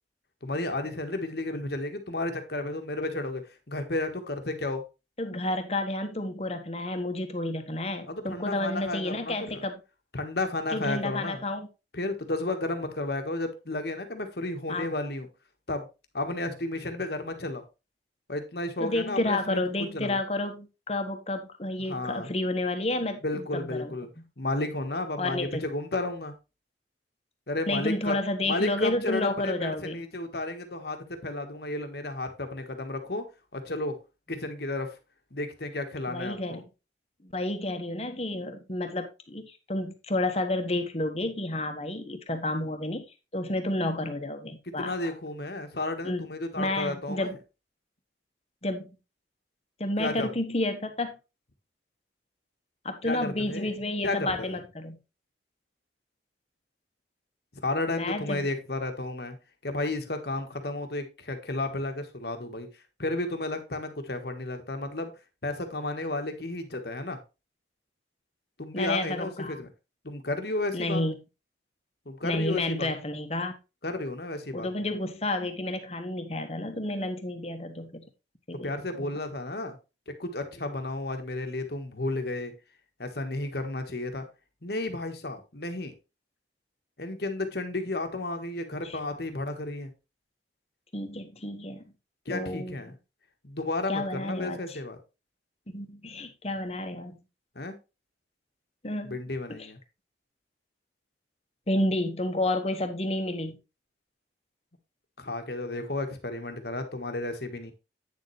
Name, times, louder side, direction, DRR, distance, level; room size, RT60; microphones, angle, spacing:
voice 1, 0.4-4.8 8.1-9.6 10.1-11.4 11.9-15.3 15.7-15.9 16.1-17.6 18.3-19.6 19.9-20.2 21.9-22.3 23.2-24.1 24.4-26.3 27.5-28.2 28.4-33.3 33.5-34.0 34.3-35.0 35.3-36.6 44.7-47.3 50.0-50.3 53.0-53.8 54.0-54.6 57.6-59.4 59.6-62.7 63.0-65.1 65.4-67.2 68.6-69.7 70.0-71.0 72.0-72.9 73.8-74.7 78.6-79.8 80.2-82.5 83.0-84.2 84.6-85.9 87.0-89.9 92.2-92.9 93.4-95.0 97.5-97.8 99.0-99.8 105.2-107.7, left 2 dB, 60° left, 1.5 m, -32 dB
voice 2, 5.2-9.8 10.7-11.7 14.7-14.9 18.8-23.9 25.2-25.6 27.7-30.0 36.1-36.6 37.2-43.0 43.3-44.9 46.0-46.3 46.6-47.4 48.6-48.9 49.8-51.2 52.8-55.0 57.9-58.5 68.7-69.5 70.7-71.1 72.2-73.6 74.5-78.0 78.5-78.7 79.0-79.1 88.8-89.0 90.9-91.8 92.3-92.8 93.9-94.8 95.7-97.2 98.8-99.2 99.5-99.7 101.7-103.6, left 1 dB, 35° left, 1.3 m, -30 dB
9.0 x 6.9 x 3.2 m
head